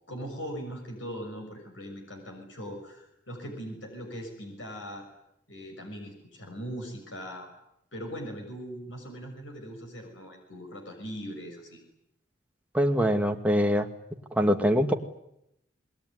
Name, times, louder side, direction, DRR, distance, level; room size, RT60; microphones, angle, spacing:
voice 1, 0.1-5.1 5.5-7.5 7.9-11.8, equal, 85° left, 4 dB, 6.6 m, -40 dB
voice 2, 12.7-13.9 14.4-14.9, equal, 10° right, 4 dB, 2.1 m, -23 dB
26.5 x 21.5 x 9.8 m, 0.81 s
head